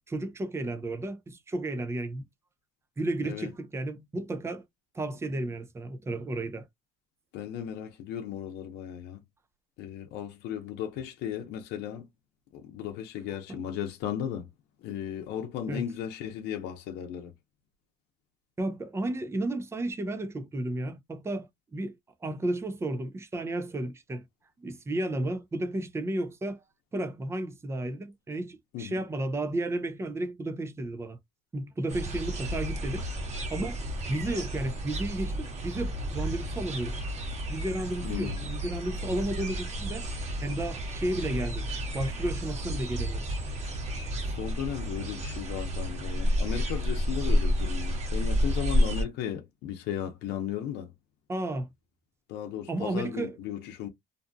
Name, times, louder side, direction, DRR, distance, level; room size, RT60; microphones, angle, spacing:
voice 1, 0.1-2.2 3.0-4.6 4.9-6.7 13.5-13.6 15.7-15.8 18.6-22.0 22.2-24.2 24.6-26.6 26.9-31.2 31.5-33.1 33.5-33.8 34.1-37.0 37.5-40.1 40.4-41.7 41.9-43.2 51.3-51.7 52.7-53.4, right 1 dB, 15° right, 0.5 m, -33 dB
voice 2, 7.3-9.2 9.8-12.1 12.5-14.5 14.8-17.3 28.7-29.0 38.0-38.4 44.3-50.9 52.3-53.9, left 9 dB, 85° left, 0.6 m, -36 dB
sound 1, 31.9-49.0, equal, 40° right, 1.2 m, -31 dB
2.6 x 2.3 x 2.6 m
cardioid pair, 110°, 17 cm